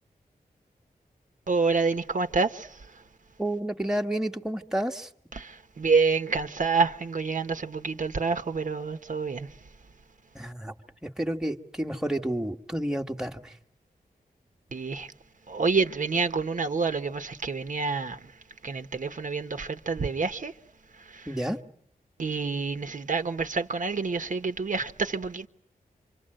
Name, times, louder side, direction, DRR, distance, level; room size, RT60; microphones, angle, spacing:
voice 1, 1.5-2.7 5.3-9.5 14.7-15.1 15.5-18.2 18.6-20.5 21.1-21.3 22.2-25.5, right 4 dB, 55° right, 1.2 m, -27 dB
voice 2, 3.4-5.1 10.3-10.7 11.0-13.5 21.3-21.6, right 1 dB, 5° right, 1.5 m, -30 dB
28.5 x 25.5 x 7.8 m
wide cardioid pair, 120°, 16 cm